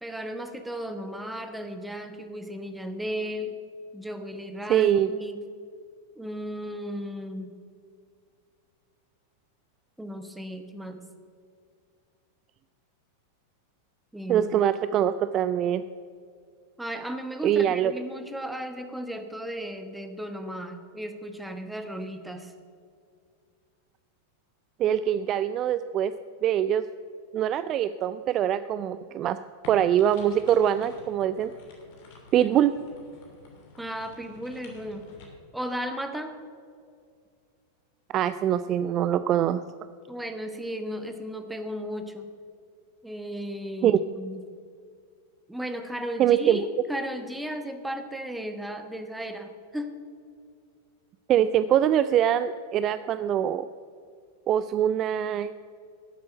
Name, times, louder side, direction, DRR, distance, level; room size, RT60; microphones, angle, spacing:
voice 1, 0.0-3.5 3.9-5.4 6.2-7.5 10.0-11.0 14.1-14.5 16.8-22.5 32.3-32.5 33.8-35.1 35.5-36.4 40.1-42.3 43.0-44.4 45.5-50.0, equal, 5° right, 7 dB, 1.1 m, -35 dB
voice 2, 4.7-5.1 14.3-15.8 17.4-17.9 24.8-26.1 26.4-26.8 27.3-29.4 29.7-31.5 32.3-32.7 38.1-39.7 43.8-44.0 46.2-46.6 51.3-53.7 54.5-55.5, right 10 dB, 35° right, 13 dB, 0.3 m, -23 dB
sound 1, 29.6-35.3, left 3 dB, 50° left, 2.8 m, -50 dB
12.0 x 7.6 x 7.7 m, 2.2 s
figure-of-eight pair, 90°, 0 cm